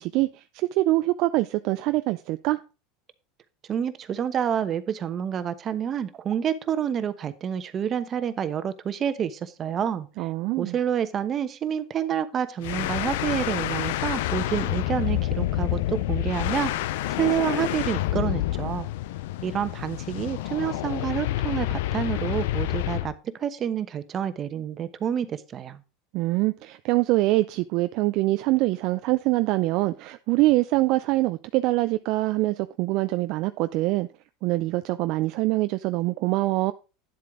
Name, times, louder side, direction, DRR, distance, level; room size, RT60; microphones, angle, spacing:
voice 1, 0.0-2.6 10.2-10.7 26.1-34.1 34.4-36.7, right 19 dB, 60° right, 0.4 m, -24 dB
voice 2, 3.7-10.3 10.6-16.7 17.2-18.9 19.4-25.8, right 8 dB, 35° right, 1.0 m, -28 dB
sound 1, 12.6-23.1, left 15 dB, 75° left, 0.5 m, -28 dB
10.5 x 7.7 x 3.7 m
hypercardioid pair, 100°, 0 cm